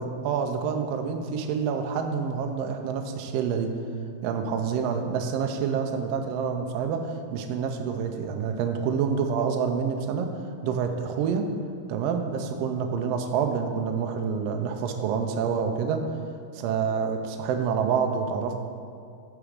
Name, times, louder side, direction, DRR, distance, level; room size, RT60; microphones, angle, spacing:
voice 1, 0.0-3.7 4.2-10.3 10.6-11.4 11.9-16.1 16.5-18.5, right 6 dB, 90° right, 5 dB, 1.4 m, -27 dB
6.5 x 4.9 x 6.4 m, 2.4 s
omnidirectional pair, 3.6 m